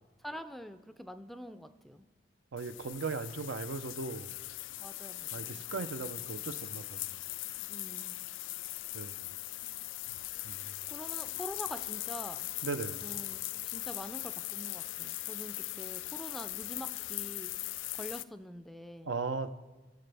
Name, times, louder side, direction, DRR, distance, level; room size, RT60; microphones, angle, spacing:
voice 1, 0.2-2.1 4.8-5.6 7.6-8.2 10.9-12.5 13.0-19.1, equal, ahead, 10 dB, 0.3 m, -45 dB
voice 2, 2.5-4.4 5.3-7.2 8.9-9.2 10.4-10.7 12.6-13.0 19.1-19.5, right 4 dB, 80° right, 10 dB, 0.6 m, -38 dB
sound 1, 2.6-18.2, left 17 dB, 80° left, 0.3 m, -40 dB
19.5 x 6.7 x 3.4 m, 1.2 s
head